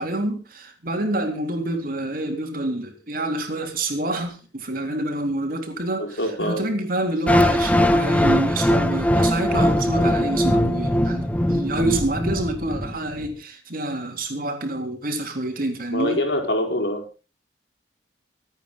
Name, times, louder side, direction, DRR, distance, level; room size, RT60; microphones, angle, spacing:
voice 1, 0.0-16.2, right 1 dB, 55° right, 3.6 m, -27 dB
voice 2, 6.0-6.7 15.9-17.0, left 1 dB, 80° left, 4.9 m, -24 dB
sound 1, 7.3-13.3, left 1 dB, 10° left, 1.3 m, -20 dB
26.0 x 9.2 x 4.0 m
head